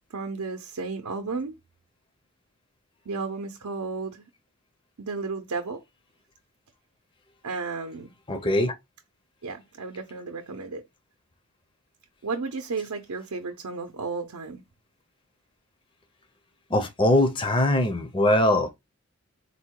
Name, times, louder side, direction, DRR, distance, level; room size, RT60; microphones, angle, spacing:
voice 1, 0.1-1.5 3.1-4.3 5.0-5.8 7.4-8.1 9.4-10.8 12.2-14.6, right 4 dB, 85° right, 0.6 m, -33 dB
voice 2, 8.3-8.7 16.7-18.7, left 1 dB, 20° left, 0.5 m, -22 dB
4.0 x 2.1 x 4.5 m
head